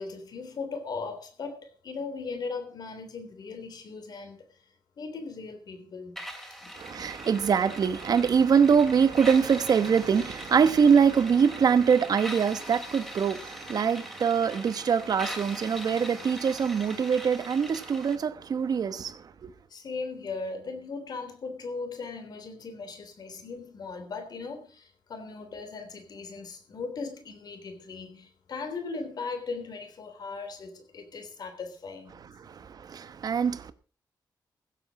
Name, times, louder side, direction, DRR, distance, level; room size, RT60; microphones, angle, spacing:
voice 1, 0.0-4.4 5.0-6.2 6.6-6.7 19.7-32.2, left 4 dB, 60° left, 3.4 m, -38 dB
sound 1, 6.2-18.2, equal, 5° left, 2.7 m, -42 dB
voice 2, 6.8-19.1 32.9-33.7, right 6 dB, 55° right, 1.1 m, -23 dB
15.5 x 8.1 x 6.0 m
wide cardioid pair, 160°, 8 cm